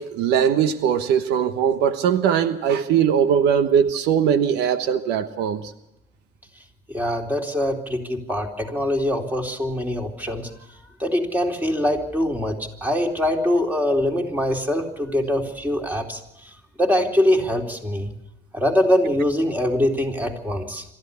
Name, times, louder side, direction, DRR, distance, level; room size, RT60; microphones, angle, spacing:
voice 1, 0.0-5.7, right 8 dB, 90° right, 10 dB, 1.2 m, -20 dB
voice 2, 6.9-10.5 11.0-16.2 16.8-18.1 18.5-20.8, left 1 dB, 10° right, 1 dB, 3.9 m, -23 dB
26.5 x 14.0 x 7.1 m, 0.86 s
cardioid pair, 110°, 17 cm